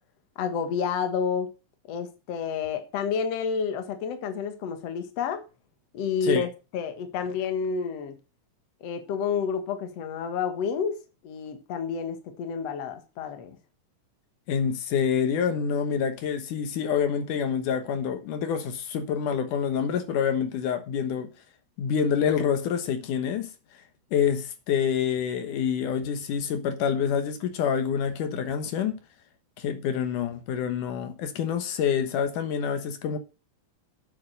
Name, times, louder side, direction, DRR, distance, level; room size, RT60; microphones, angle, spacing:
voice 1, 0.4-1.5 1.9-5.5 5.9-8.2 8.8-11.0 11.2-13.6, left 6 dB, 55° left, 2.4 m, -30 dB
voice 2, 14.5-21.3 21.8-23.5 24.1-29.0 29.6-33.2, left 7 dB, 80° left, 2.7 m, -27 dB
8.7 x 8.4 x 6.4 m
omnidirectional pair, 3.6 m